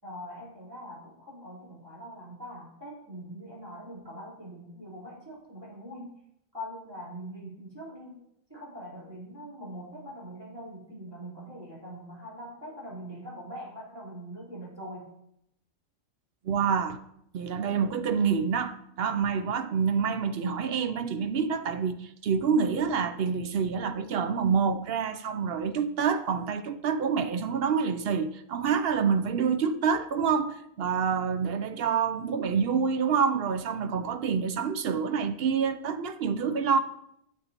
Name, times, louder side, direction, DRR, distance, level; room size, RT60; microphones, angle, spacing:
voice 1, 0.0-6.1 6.5-8.2 8.5-15.0, equal, 15° right, 3.7 m, -42 dB
voice 2, 16.4-17.0 17.3-36.8, right 6 dB, 65° right, 0.6 m, -27 dB
9.5 x 8.0 x 2.9 m
omnidirectional pair, 1.5 m